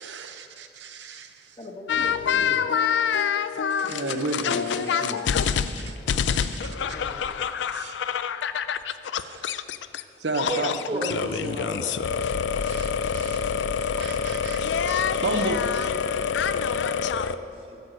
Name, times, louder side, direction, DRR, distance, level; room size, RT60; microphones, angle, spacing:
voice 1, 0.0-1.6 3.7-6.0 6.3-6.7 7.7-8.0 9.1-9.6 10.2-11.3 12.7-13.7 13.9-15.9, right 2 dB, 85° right, 6 dB, 0.7 m, -34 dB
voice 2, 1.6-2.9 6.5-7.4, left 1 dB, 30° left, 1 dB, 1.1 m, -42 dB
sound 1, 1.9-10.0 10.3-17.4, left 7 dB, 85° left, 0.4 m, -26 dB
voice 3, 10.4-12.0 17.0-17.8, right 1 dB, 30° right, 1 dB, 1.3 m, -33 dB
10.0 x 7.7 x 6.3 m, 2.6 s
head